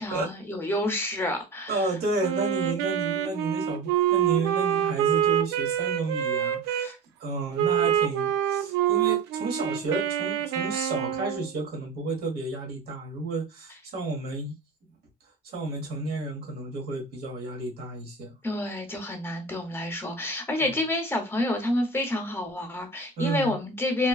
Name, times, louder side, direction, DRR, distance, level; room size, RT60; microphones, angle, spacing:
voice 1, 0.0-1.9 6.8-7.0 10.7-10.9 18.4-24.1, left 1 dB, 15° left, 0.9 m, -29 dB
voice 2, 1.7-6.9 7.2-14.5 15.4-18.3 20.6-20.7 23.2-23.6, right 2 dB, 70° right, 1.3 m, -32 dB
Wind instrument woodwind instrument, 2.2-6.9 7.6-11.5, right 10 dB, 90° right, 0.4 m, -26 dB
3.0 x 2.3 x 2.4 m
cardioid pair, 110°, 17 cm